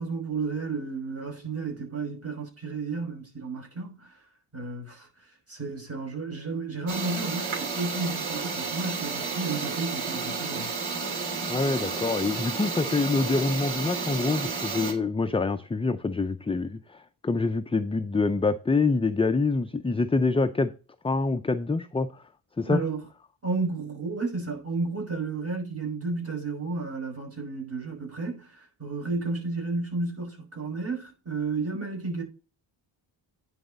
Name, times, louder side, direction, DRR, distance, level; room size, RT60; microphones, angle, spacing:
voice 1, 0.0-4.2 4.5-10.7 22.7-23.0 23.4-32.2, right 3 dB, 30° right, 5.6 m, -32 dB
sound 1, 6.9-14.9, right 5 dB, 80° right, 3.2 m, -32 dB
voice 2, 11.5-17.0 17.2-20.7 21.0-22.1 22.6-22.8, left 3 dB, 15° left, 0.4 m, -26 dB
10.0 x 4.9 x 5.2 m
cardioid pair, 105°, 47 cm